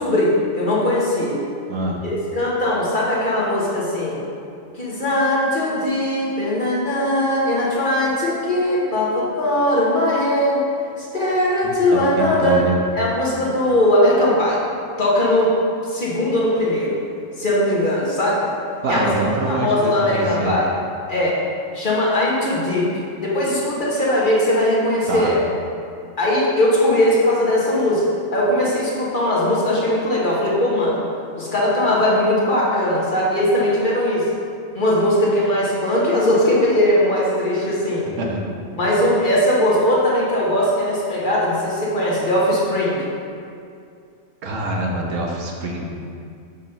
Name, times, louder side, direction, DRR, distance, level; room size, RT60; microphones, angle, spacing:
voice 1, 0.0-1.4 2.0-4.2 4.7-10.6 11.1-12.6 13.0-14.6 15.0-15.5 15.9-17.0 17.4-18.5 18.9-19.1 19.5-20.7 21.1-21.4 21.7-22.9 23.2-25.4 26.2-28.1 28.3-31.0 31.3-34.3 34.7-38.1 38.7-43.0, left 1 dB, 40° left, -6 dB, 1.2 m, -19 dB
voice 2, 1.7-2.0 11.6-12.8 18.8-20.5 25.1-25.3 38.2-38.4 44.4-45.9, right 2 dB, 75° right, -1 dB, 1.2 m, -24 dB
6.7 x 3.0 x 5.4 m, 2.4 s
omnidirectional pair, 1.3 m